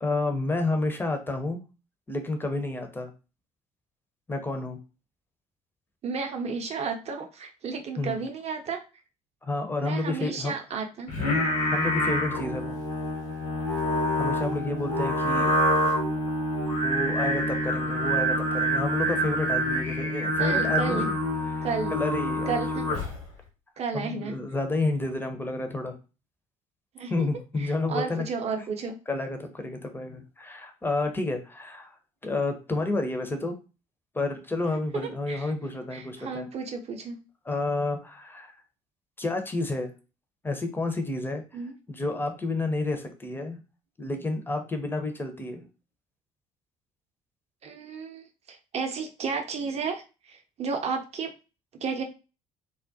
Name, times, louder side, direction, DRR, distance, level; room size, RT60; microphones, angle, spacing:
voice 1, 0.0-1.7 2.1-3.1 4.3-4.8 8.0-8.2 9.4-10.5 11.7-12.8 14.2-15.5 16.8-21.2 21.5-22.5 23.9-26.0 27.1-28.3 29.1-31.9 32.2-33.6 34.1-36.5 37.5-38.5 39.2-39.9 40.4-41.4 41.9-43.6 44.0-45.6, left 2 dB, 10° left, 5 dB, 0.6 m, -30 dB
voice 2, 6.0-8.8 9.8-11.1 20.4-21.1 21.6-21.9 22.5-23.0 23.8-24.4 26.9-27.3 27.6-29.0 34.9-35.5 35.9-37.2 41.5-41.7 47.6-51.3 51.7-52.0, right 5 dB, 40° right, 5 dB, 0.6 m, -33 dB
Singing, 11.1-23.3, equal, 70° left, 1.0 m, -26 dB
2.3 x 2.1 x 2.5 m, 0.31 s
figure-of-eight pair, 55°, 17 cm